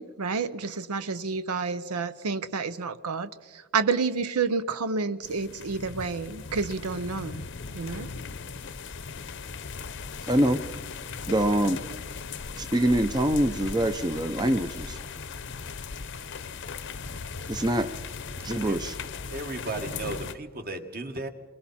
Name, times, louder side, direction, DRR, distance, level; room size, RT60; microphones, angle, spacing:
voice 1, 0.0-3.3 3.7-7.4 7.8-8.1, right 4 dB, 85° right, 12 dB, 0.7 m, -29 dB
sound 1, 5.2-20.3, left 5 dB, 55° left, 0.8 m, -38 dB
voice 2, 10.3-10.6 11.3-11.8 12.6-15.0 17.5-17.9 18.4-19.0, right 1 dB, 20° right, 8 dB, 0.6 m, -24 dB
voice 3, 19.3-21.3, right 2 dB, 45° right, 6 dB, 1.7 m, -35 dB
28.5 x 22.0 x 4.3 m, 1.3 s
head